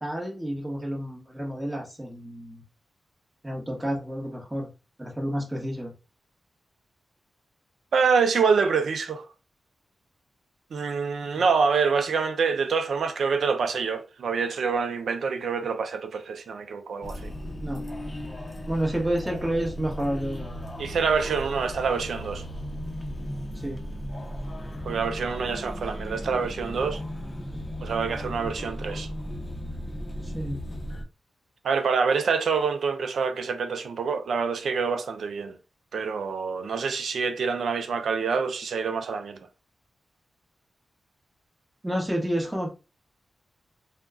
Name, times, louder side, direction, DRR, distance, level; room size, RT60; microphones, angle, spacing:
voice 1, 0.0-2.6 3.4-4.7 5.0-5.9 11.3-11.4 17.6-17.9 18.7-20.5 23.5-23.8 27.7-27.8 30.2-30.6 41.8-42.7, right 1 dB, 15° right, 1.0 m, -30 dB
voice 2, 7.9-9.3 10.7-17.3 20.8-22.4 24.8-27.0 27.8-29.1 31.6-35.6 35.9-39.4, right 5 dB, 85° right, 0.4 m, -26 dB
sound 1, 17.0-31.0, equal, 25° left, 0.6 m, -36 dB
2.3 x 2.1 x 3.5 m
wide cardioid pair, 85°, 0 cm